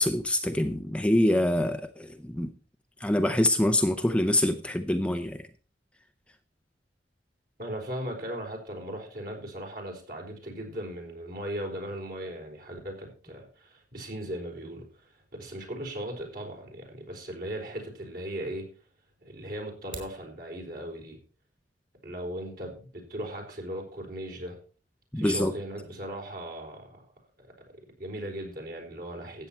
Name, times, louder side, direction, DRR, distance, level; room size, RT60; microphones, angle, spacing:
voice 1, 0.0-2.5 3.0-5.5 25.1-25.5, left 1 dB, 5° left, 7 dB, 0.6 m, -25 dB
voice 2, 7.6-18.7 19.2-21.2 22.0-24.6 25.2-27.1 27.4-27.5 28.0-29.5, right 1 dB, 55° right, 1 dB, 4.2 m, -38 dB
sound 1, 19.7-20.2, right 4 dB, 40° right, 3.8 m, -44 dB
13.5 x 8.6 x 4.3 m, 0.37 s
head